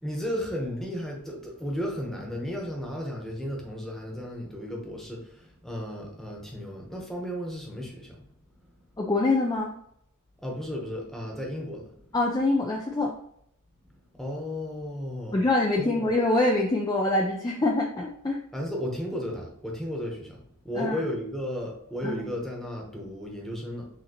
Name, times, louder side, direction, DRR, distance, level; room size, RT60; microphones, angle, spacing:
voice 1, 0.0-8.3 8.7-8.8 10.4-12.1 13.9-15.4 15.8-16.1 18.5-23.9, equal, ahead, -1 dB, 1.0 m, -34 dB
voice 2, 9.0-9.7 12.1-13.1 15.3-18.4 20.8-21.0 22.0-22.3, left 2 dB, 20° left, 0 dB, 0.4 m, -25 dB
6.4 x 2.8 x 2.9 m, 0.70 s
head